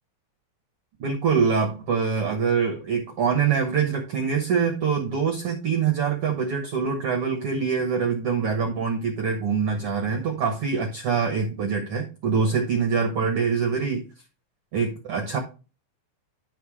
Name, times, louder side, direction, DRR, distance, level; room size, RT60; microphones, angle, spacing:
voice 1, 1.0-14.0 14.7-15.4, right 6 dB, 70° right, 2 dB, 1.4 m, -24 dB
11.5 x 3.8 x 4.8 m, 0.34 s
omnidirectional pair, 4.1 m